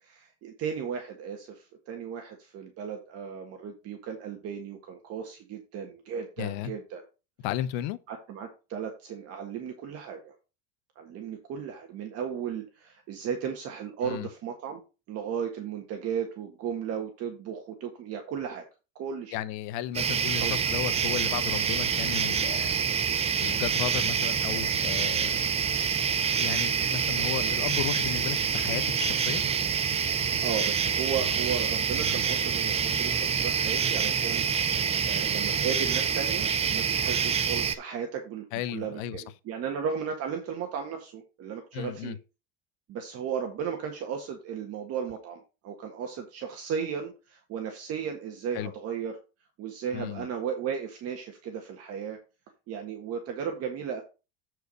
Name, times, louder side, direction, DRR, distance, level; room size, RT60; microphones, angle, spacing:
voice 1, 0.0-7.0 8.1-10.3 11.0-14.8 15.1-18.6 19.0-19.4 20.0-20.5 27.4-27.5 30.4-38.4 38.7-42.2 42.9-49.2 49.6-52.2 52.7-54.0, right 7 dB, 45° right, 1.6 m, -35 dB
voice 2, 6.4-6.7 7.4-8.0 14.0-14.3 19.3-22.8 23.4-25.5 26.3-29.4 38.5-39.2 41.7-42.2 48.5-48.7 49.9-50.3, left 12 dB, 70° left, 0.9 m, -34 dB
sound 1, 19.9-37.7, right 7 dB, 20° right, 0.5 m, -27 dB
8.0 x 4.8 x 5.3 m
supercardioid pair, 135°, 33 cm